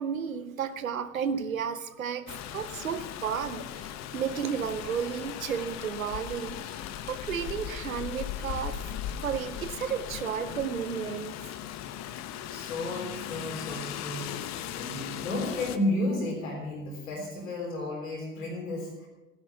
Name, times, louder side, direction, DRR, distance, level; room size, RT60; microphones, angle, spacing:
voice 1, 0.0-6.6 7.1-8.8 9.2-11.4, right 7 dB, 80° right, 13 dB, 0.9 m, -33 dB
Rain, 2.3-15.8, left 10 dB, 40° left, 1.1 m, -38 dB
voice 2, 12.5-19.1, left 1 dB, 75° left, 0 dB, 3.6 m, -33 dB
15.0 x 10.5 x 5.8 m, 1.1 s
figure-of-eight pair, 70°, 40 cm